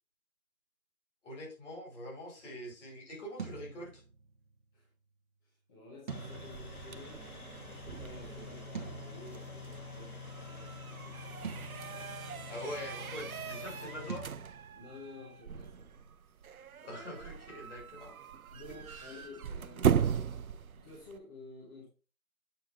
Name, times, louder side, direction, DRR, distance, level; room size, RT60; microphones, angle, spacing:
voice 1, 1.2-4.0 12.5-14.3 16.8-18.2 18.7-19.2, left 1 dB, 55° left, 4.1 m, -44 dB
sound 1, 3.4-4.6 6.1-7.6 8.7-9.9 11.4-12.7 14.1-15.2, right 5 dB, 35° right, 0.9 m, -46 dB
voice 2, 5.4-7.3 7.6-11.7 14.7-16.0 18.5-21.9, left 2 dB, 15° left, 0.9 m, -52 dB
sound 2, 6.1-14.2, left 3 dB, 85° left, 2.2 m, -47 dB
sound 3, 6.1-21.2, right 8 dB, 80° right, 0.6 m, -38 dB
7.7 x 4.6 x 3.3 m
figure-of-eight pair, 155°, 42 cm